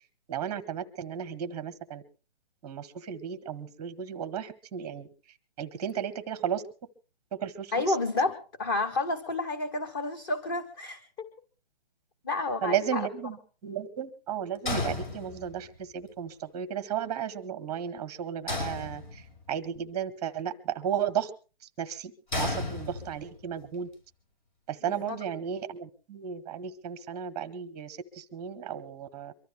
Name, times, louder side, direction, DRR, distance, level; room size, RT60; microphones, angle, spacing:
voice 1, 0.3-2.0 2.6-5.1 5.6-6.6 7.3-8.0 12.6-13.4 13.6-19.2 19.5-21.3 21.8-23.9 24.7-29.3, right 8 dB, 10° right, 12 dB, 0.9 m, -34 dB
voice 2, 7.7-11.3 12.2-13.1 24.9-25.2, left 2 dB, 20° left, 8 dB, 1.0 m, -30 dB
sound 1, 14.7-15.7 18.5-19.5 22.3-23.4, left 3 dB, 50° left, 5.5 m, -33 dB
24.0 x 13.0 x 3.3 m, 0.35 s
hypercardioid pair, 165°, 30 cm